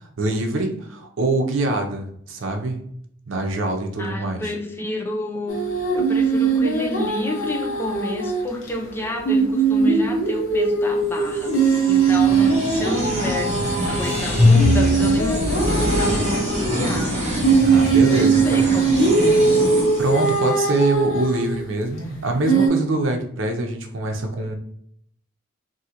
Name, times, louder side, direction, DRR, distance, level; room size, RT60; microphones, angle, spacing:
voice 1, 0.2-2.8 3.3-4.4 17.6-18.7 20.0-24.5, right 2 dB, 75° right, 3 dB, 0.6 m, -24 dB
voice 2, 4.0-13.5 13.9-17.2 18.1-19.0, left 1 dB, 10° left, 2 dB, 0.4 m, -30 dB
sound 1, 5.5-8.4 8.7-8.8 9.2-16.6 17.4-21.6 22.5-22.7, right 4 dB, 85° left, 0.9 m, -20 dB
sound 2, 8.8-9.2 9.5-9.6 11.4-12.9 13.2-16.2, left 2 dB, 35° left, 1.0 m, -22 dB
sound 3, 11.1-20.8, right 1 dB, 35° right, 1.2 m, -26 dB
3.8 x 2.7 x 2.8 m, 0.68 s
head